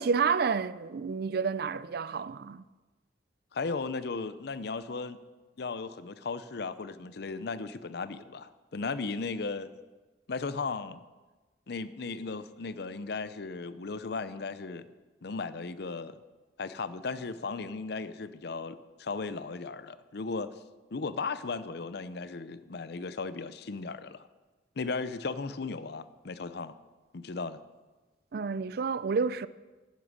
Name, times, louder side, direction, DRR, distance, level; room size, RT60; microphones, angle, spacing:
voice 1, 0.0-2.6 28.3-29.5, right 5 dB, 60° right, 0.4 m, -29 dB
voice 2, 3.5-5.2 5.6-9.7 10.3-11.0 11.7-14.9 15.2-16.2 16.6-20.5 20.9-24.3 24.8-26.7 27.1-27.6, left 4 dB, 65° left, 0.6 m, -36 dB
11.0 x 10.5 x 6.4 m
head